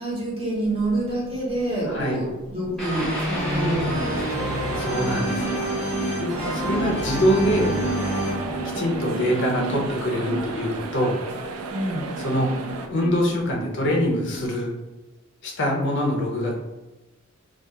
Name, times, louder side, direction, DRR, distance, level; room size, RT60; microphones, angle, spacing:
voice 1, 0.0-4.4 6.3-7.2 7.5-7.7 11.7-12.1, right 1 dB, 30° right, -5 dB, 0.8 m, -28 dB
sound 1, 0.6-14.5, right 2 dB, 60° right, 0.8 m, -35 dB
voice 2, 1.9-2.2 4.7-5.6 6.2-7.7 8.8-11.2 12.2-12.5 12.8-14.7 15.4-16.5, equal, 60° left, -1 dB, 0.6 m, -24 dB
sound 2, 2.8-9.7, equal, ahead, 0.7 m, -28 dB
sound 3, 3.9-12.9, right 4 dB, 85° right, 0.3 m, -34 dB
2.3 x 2.3 x 2.7 m, 1.1 s
head